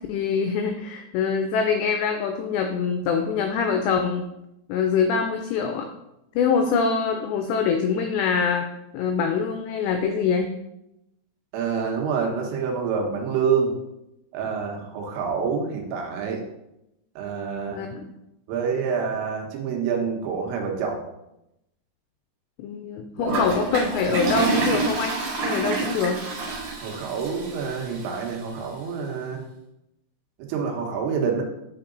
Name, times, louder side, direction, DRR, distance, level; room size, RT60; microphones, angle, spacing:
voice 1, 0.1-4.3 4.7-5.9 6.4-8.7 8.9-10.5 17.7-18.0 22.6-25.1 25.4-26.2, left 6 dB, 85° left, 5 dB, 2.4 m, -24 dB
voice 2, 11.5-13.7 14.3-16.4 17.2-17.8 18.5-21.0 23.2-23.5 26.8-29.5 30.4-31.4, right 6 dB, 85° right, 1 dB, 3.8 m, -27 dB
Toilet flush, 23.3-28.3, right 3 dB, 55° right, 3.0 m, -27 dB
10.5 x 4.8 x 3.9 m, 0.87 s
omnidirectional pair, 5.7 m